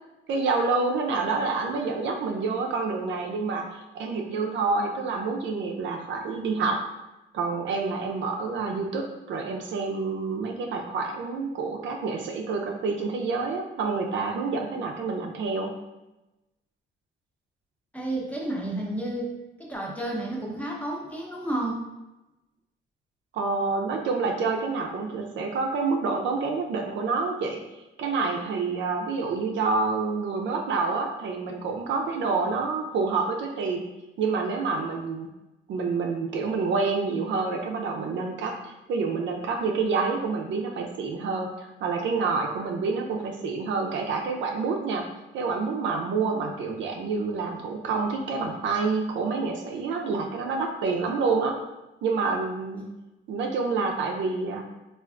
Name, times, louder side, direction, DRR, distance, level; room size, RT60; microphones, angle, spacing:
voice 1, 0.3-6.8 7.3-15.7 23.3-27.6 28.0-33.8 34.2-35.3 35.7-38.6 38.9-45.0 45.3-51.6 52.0-52.9 53.3-54.6, right 4 dB, 70° right, 2 dB, 0.5 m, -28 dB
voice 2, 17.9-19.3 19.6-21.8, right 1 dB, 5° left, -2 dB, 0.7 m, -31 dB
3.3 x 2.4 x 2.4 m, 1.0 s
cardioid pair, 90°, 20 cm